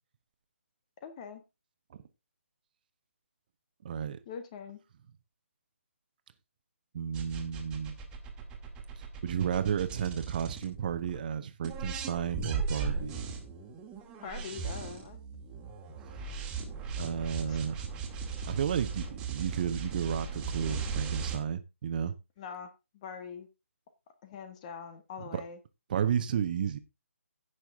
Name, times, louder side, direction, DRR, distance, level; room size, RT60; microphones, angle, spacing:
voice 1, 1.0-1.4 4.3-4.8 14.2-15.2 17.5-17.6 22.4-23.5 24.2-25.6, left 6 dB, 30° left, 1.7 m, -43 dB
voice 2, 3.8-4.2 6.9-8.0 9.2-13.2 17.0-18.0 18.5-22.1 25.3-25.4 25.9-26.8, right 8 dB, 40° right, 1.3 m, -32 dB
sound 1, 7.1-11.2 11.6-21.4, right 5 dB, 15° right, 2.2 m, -37 dB
16.5 x 6.4 x 3.6 m
figure-of-eight pair, 145°, 8 cm